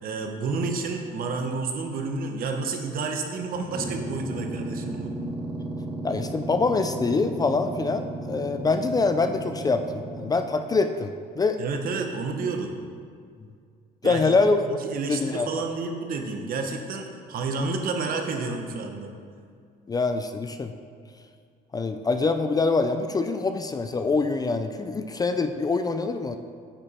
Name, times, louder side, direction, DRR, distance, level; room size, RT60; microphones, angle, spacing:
voice 1, 0.0-5.1 11.6-12.7 14.0-14.3 14.7-19.1, right 4 dB, 60° right, 4 dB, 0.9 m, -30 dB
sound 1, 3.5-10.9, right 2 dB, 30° right, 1.3 m, -35 dB
voice 2, 6.0-11.6 14.0-14.6 15.1-15.6 19.9-20.7 21.7-26.4, left 3 dB, 20° left, 8 dB, 0.4 m, -25 dB
8.8 x 5.0 x 4.3 m, 2.2 s
cardioid pair, 110°, 17 cm